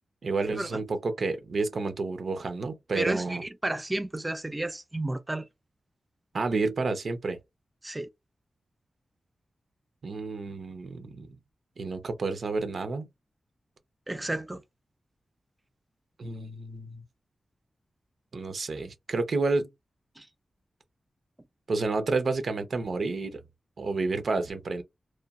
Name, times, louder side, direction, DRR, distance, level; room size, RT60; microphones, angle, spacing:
voice 1, 0.2-3.4 6.3-7.4 10.0-11.4 11.8-13.1 16.2-17.0 18.3-19.7 21.7-23.4 23.8-24.8, right 3 dB, 70° right, 0.5 m, -30 dB
voice 2, 2.9-5.5 7.8-8.1 14.1-14.6 20.2-20.3, right 1 dB, 20° right, 0.4 m, -32 dB
3.0 x 2.1 x 2.3 m
cardioid pair, 70°, 0 cm